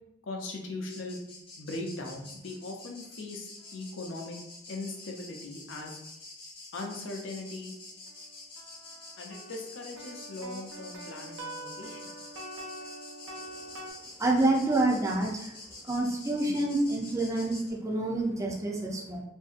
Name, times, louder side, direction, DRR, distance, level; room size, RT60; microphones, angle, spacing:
voice 1, 0.2-1.2 1.6-4.4 4.7-6.0 6.7-7.7 9.2-12.1 16.4-16.7, left 2 dB, 70° left, 1 dB, 0.6 m, -39 dB
sound 1, 0.9-17.7, left 2 dB, 25° left, 0.7 m, -48 dB
sound 2, 7.4-7.5 8.1-13.9, right 1 dB, 80° right, 0.5 m, -45 dB
voice 2, 14.2-15.5 15.8-19.2, right 2 dB, 15° right, -2 dB, 0.4 m, -27 dB
2.7 x 2.6 x 2.4 m, 0.85 s
head